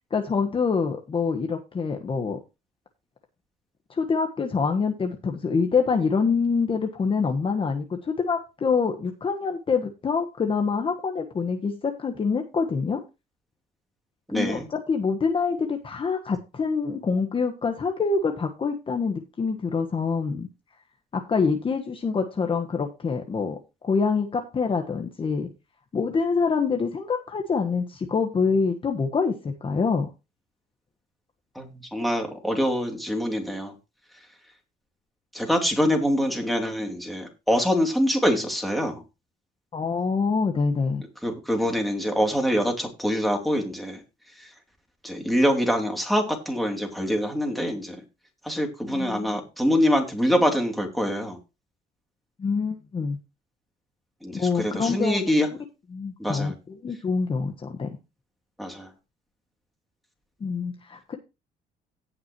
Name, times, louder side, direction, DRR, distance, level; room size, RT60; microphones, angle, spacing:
voice 1, 0.1-2.4 3.9-13.0 14.3-20.5 21.1-23.6 23.8-25.5 25.9-30.1 39.7-41.0 48.9-49.3 52.4-53.2 54.3-55.3 55.9-56.5 56.8-57.9 60.4-61.2, left 5 dB, 30° left, 4 dB, 1.4 m, -26 dB
voice 2, 14.3-14.7 31.5-33.7 35.3-39.0 41.2-44.0 44.4-44.5 45.0-48.0 48.4-51.4 54.2-55.5 56.2-56.6 58.6-58.9, equal, ahead, 2 dB, 3.1 m, -25 dB
17.5 x 6.0 x 3.1 m, 0.27 s
cardioid pair, 110°, 17 cm